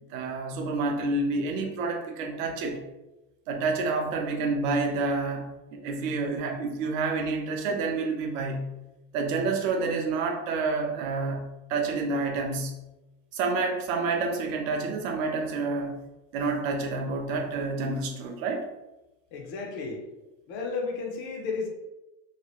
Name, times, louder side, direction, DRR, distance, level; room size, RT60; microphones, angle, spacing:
voice 1, 0.1-2.8 3.5-8.7 9.1-12.8 13.3-16.0 16.3-18.7, right 3 dB, 70° right, 3 dB, 0.7 m, -29 dB
voice 2, 19.3-20.0 20.5-21.7, left 4 dB, 30° left, 1 dB, 0.4 m, -33 dB
2.8 x 2.4 x 2.9 m, 1.0 s
supercardioid pair, 160°, 41 cm